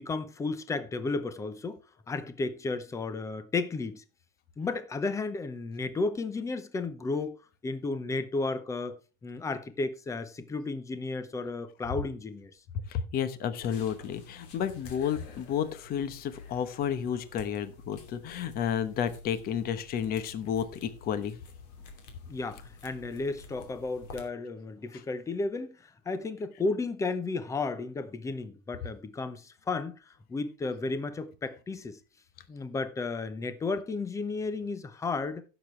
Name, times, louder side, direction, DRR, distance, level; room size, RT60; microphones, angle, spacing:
voice 1, 0.0-1.8 2.1-4.0 4.6-7.4 7.6-9.0 9.2-12.5 22.3-32.0 32.5-35.4, left 3 dB, 10° left, 0.7 m, -33 dB
voice 2, 12.7-21.4 24.9-25.0, left 8 dB, 30° left, 1.1 m, -31 dB
sound 1, 13.6-24.3, left 3 dB, 50° left, 2.9 m, -50 dB
16.0 x 7.0 x 3.2 m
supercardioid pair, 165°, 32 cm